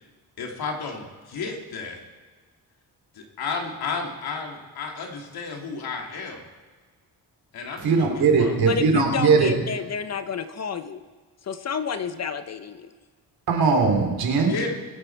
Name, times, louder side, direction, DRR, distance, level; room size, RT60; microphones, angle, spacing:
voice 1, 0.4-2.0 3.1-6.4 7.5-8.6 14.5-14.7, left 4 dB, 75° left, 1 dB, 2.6 m, -32 dB
voice 2, 7.8-9.5 13.5-14.5, right 4 dB, 70° right, 3 dB, 3.0 m, -20 dB
voice 3, 8.6-11.0 11.4-12.9, left 6 dB, 45° left, 10 dB, 0.8 m, -30 dB
22.0 x 8.9 x 4.6 m, 1.4 s
cardioid pair, 120°, 37 cm